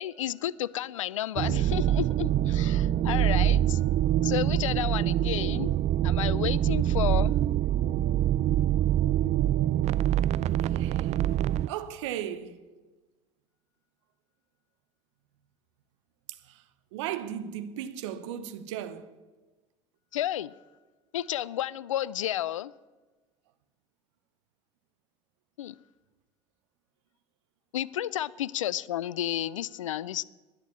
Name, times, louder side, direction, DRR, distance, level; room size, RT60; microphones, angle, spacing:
voice 1, 0.0-3.8 4.2-5.7 6.0-7.3 20.1-20.5 21.1-22.7 25.6-25.8 27.7-30.2, left 12 dB, 85° left, 0.4 m, -31 dB
sound 1, 1.4-11.7, right 12 dB, 45° right, 0.4 m, -25 dB
voice 2, 10.7-11.1 11.7-12.6 16.5-16.6 16.9-19.1, right 10 dB, 70° right, 1.0 m, -36 dB
11.0 x 10.5 x 8.4 m
hypercardioid pair, 75°, 16 cm